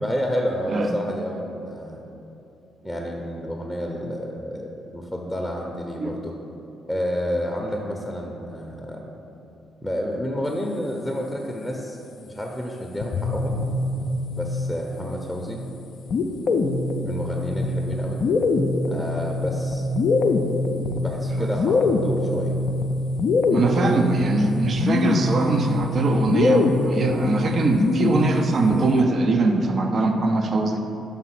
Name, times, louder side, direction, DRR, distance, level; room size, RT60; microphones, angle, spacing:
voice 1, 0.0-2.0 2.8-6.3 6.9-9.1 9.8-12.0 12.3-13.6 14.4-15.6 17.0-18.2 18.9-19.9 21.0-22.6, equal, 10° left, 1 dB, 0.7 m, -30 dB
sound 1, 13.0-15.1 16.1-29.0, left 2 dB, 55° left, 0.4 m, -23 dB
voice 2, 23.5-30.8, right 3 dB, 50° right, 4 dB, 0.6 m, -22 dB
5.4 x 3.8 x 5.9 m, 2.9 s
hypercardioid pair, 45°, 0 cm